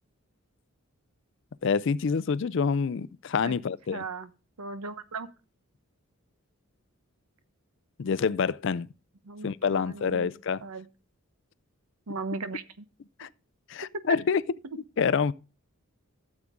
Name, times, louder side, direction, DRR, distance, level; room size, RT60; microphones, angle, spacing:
voice 1, 1.6-4.0 8.0-8.9 9.4-10.6 13.2-13.3 13.7-14.4 15.0-15.3, left 5 dB, 55° left, 0.4 m, -27 dB
voice 2, 3.9-4.3 4.6-5.3 9.2-10.3 10.6-10.9 12.1-12.8, right 3 dB, 90° right, 0.9 m, -37 dB
13.0 x 7.3 x 3.6 m
head